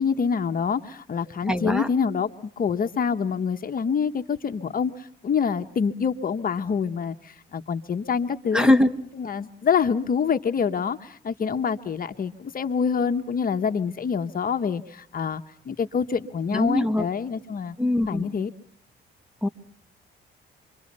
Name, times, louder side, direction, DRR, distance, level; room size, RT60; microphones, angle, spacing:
voice 1, 0.0-2.3 2.6-4.9 5.2-8.7 9.2-17.8 18.1-18.5, left 6 dB, 45° left, 8 dB, 1.2 m, -26 dB
voice 2, 1.5-1.9 8.5-8.9 16.5-17.1 17.8-18.3 19.4-19.5, left 1 dB, 5° right, 10 dB, 1.6 m, -21 dB
28.0 x 24.5 x 5.4 m, 0.62 s
cardioid pair, 90°, 20 cm